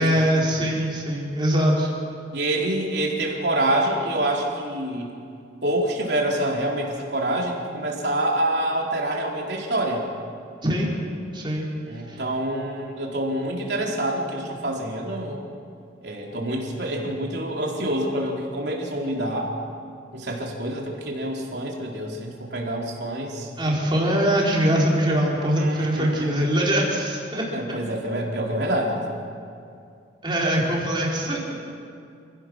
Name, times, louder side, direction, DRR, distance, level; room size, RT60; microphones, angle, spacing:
voice 1, 0.0-1.9 10.6-10.9 11.3-11.7 12.1-12.2 23.6-27.4 30.2-31.5, equal, 25° right, -3 dB, 4.4 m, -22 dB
voice 2, 2.3-5.1 5.6-10.1 11.9-15.4 16.0-19.5 20.1-23.5 25.6-26.3 27.5-29.0, right 1 dB, 60° right, -1 dB, 3.9 m, -26 dB
28.5 x 16.5 x 6.3 m, 2.4 s
head